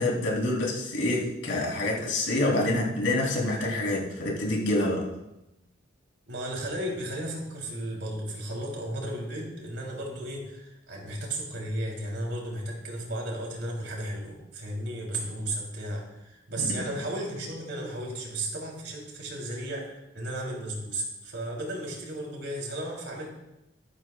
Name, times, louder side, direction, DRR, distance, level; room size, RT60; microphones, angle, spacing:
voice 1, 0.0-5.1 16.6-16.8, left 1 dB, 85° left, -2 dB, 3.4 m, -27 dB
voice 2, 6.3-23.3, right 1 dB, 70° right, -2 dB, 3.5 m, -34 dB
13.5 x 12.5 x 2.4 m, 0.93 s
head